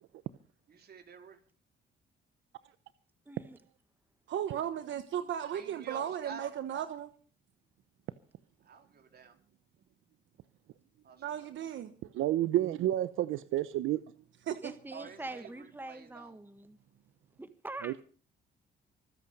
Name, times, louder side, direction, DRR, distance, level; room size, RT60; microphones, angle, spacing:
voice 1, 0.7-1.4 5.5-6.5 8.6-9.3 11.0-11.7 14.9-16.4, right 6 dB, 55° right, 3.9 m, -49 dB
voice 2, 3.3-3.6 14.6-16.8 17.4-17.9, right 2 dB, 10° right, 1.5 m, -44 dB
voice 3, 4.3-7.1 11.2-11.9 14.5-14.7, right 10 dB, 70° right, 1.2 m, -36 dB
voice 4, 12.1-14.0 17.8-17.9, right 13 dB, 85° right, 0.7 m, -29 dB
24.5 x 8.7 x 5.4 m
cardioid pair, 90°, 20 cm